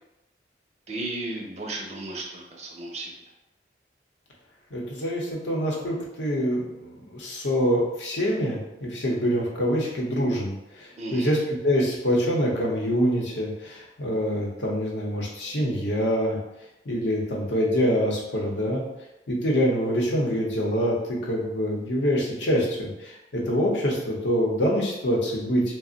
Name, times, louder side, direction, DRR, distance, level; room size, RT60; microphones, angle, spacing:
voice 1, 0.9-3.2 11.0-11.3, right 2 dB, 35° right, -1 dB, 0.5 m, -34 dB
voice 2, 4.7-16.4 16.9-18.8 19.3-25.6, equal, 85° left, -2 dB, 0.7 m, -25 dB
2.4 x 2.0 x 3.8 m, 0.92 s
head